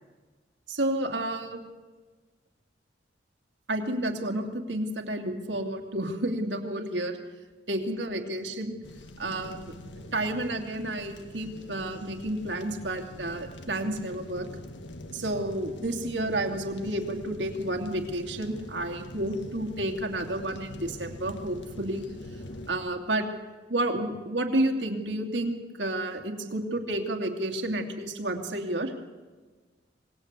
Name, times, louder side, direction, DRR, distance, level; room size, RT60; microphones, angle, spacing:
voice 1, 0.7-1.7 3.7-7.1 7.7-8.8 9.2-9.6 10.1-14.5 15.1-22.0 22.7-23.3 23.7-28.9, right 1 dB, 80° right, 3 dB, 2.7 m, -30 dB
sound 1, 8.8-22.8, left 1 dB, 90° left, 1.9 m, -44 dB
26.5 x 19.5 x 8.3 m, 1.3 s
head